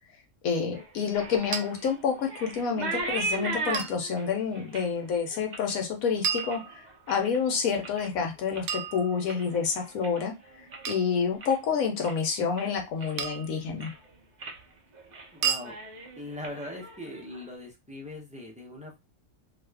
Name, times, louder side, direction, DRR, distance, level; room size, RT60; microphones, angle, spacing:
voice 1, 0.4-13.9, left 6 dB, 90° left, 3 dB, 1.2 m, -29 dB
sound 1, 0.7-7.4 7.7-8.2 8.5-11.0 11.3-11.7 12.0-12.2 12.6-13.4 13.7-14.0 14.4-14.6 14.9-15.3 15.6-17.4, right 3 dB, 55° right, 0.5 m, -38 dB
sound 2, 1.5-1.6 3.7-4.0 6.2-7.1 8.7-9.6 10.8-11.1 13.2-13.6 15.4-15.7, right 7 dB, 90° right, 1.0 m, -32 dB
voice 2, 15.3-15.7 16.2-19.0, left 1 dB, 5° right, -1 dB, 0.6 m, -40 dB
2.7 x 2.5 x 3.3 m, 0.23 s
omnidirectional pair, 1.4 m